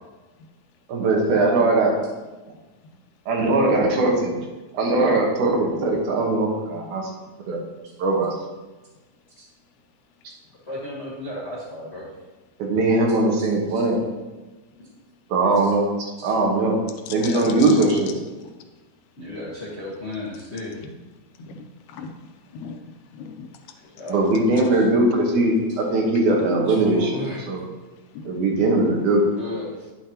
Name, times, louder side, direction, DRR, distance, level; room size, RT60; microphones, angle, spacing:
voice 1, 0.9-1.9 3.3-4.3 4.7-7.1 7.5-7.6 8.0-8.3 12.6-14.0 15.3-15.8 16.2-16.8 17.1-18.1 24.1-27.6 28.3-29.3, right 2 dB, 85° right, 0 dB, 2.8 m, -20 dB
voice 2, 10.6-12.1 13.4-13.8 14.8-14.9 16.2-16.3 17.1-17.6 19.2-20.8 23.9-24.2 24.5-24.8 26.7-27.5 29.4-29.9, left 1 dB, 55° left, -6 dB, 0.7 m, -34 dB
voice 3, 17.1-17.7 20.8-20.9 21.4-22.1 22.5-22.8 23.1-23.5 28.1-28.3 28.9-29.0, left 6 dB, 90° left, 6 dB, 2.2 m, -37 dB
9.9 x 6.6 x 2.9 m, 1.2 s
omnidirectional pair, 3.4 m